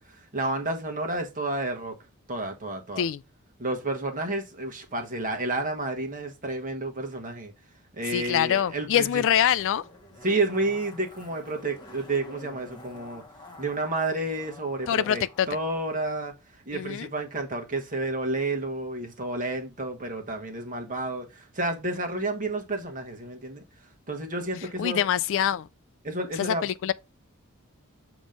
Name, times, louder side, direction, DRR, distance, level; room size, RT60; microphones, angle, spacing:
voice 1, 0.0-2.0 2.3-3.0 3.6-7.5 7.9-9.2 10.2-13.2 13.6-16.3 16.6-23.6 24.1-25.0 26.0-26.6, right 2 dB, 40° right, 1.3 m, -30 dB
voice 2, 8.1-9.8 14.9-15.5 16.7-17.1 24.8-25.7 26.4-26.9, left 9 dB, 60° left, 0.3 m, -24 dB
Zipper (clothing), 8.2-15.8 16.1-16.2, left 2 dB, 20° left, 1.1 m, -49 dB
7.2 x 3.0 x 5.1 m
head